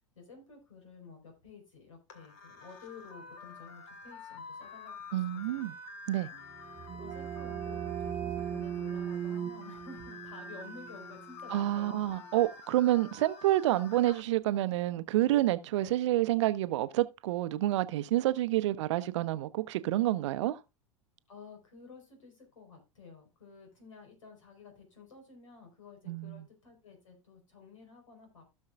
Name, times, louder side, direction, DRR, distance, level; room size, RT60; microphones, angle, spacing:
voice 1, 0.1-5.7 6.9-12.1 15.8-16.0 21.3-28.4, left 4 dB, 75° left, 4.5 m, -52 dB
sound 1, 2.1-14.2, left 4 dB, 55° left, 2.0 m, -49 dB
voice 2, 5.1-5.7 6.1-6.3 11.5-20.6 26.1-26.4, right 15 dB, 60° right, 0.7 m, -28 dB
sound 2, 6.4-12.0, right 8 dB, 30° right, 0.9 m, -39 dB
16.5 x 6.4 x 2.4 m
figure-of-eight pair, 85°, 17 cm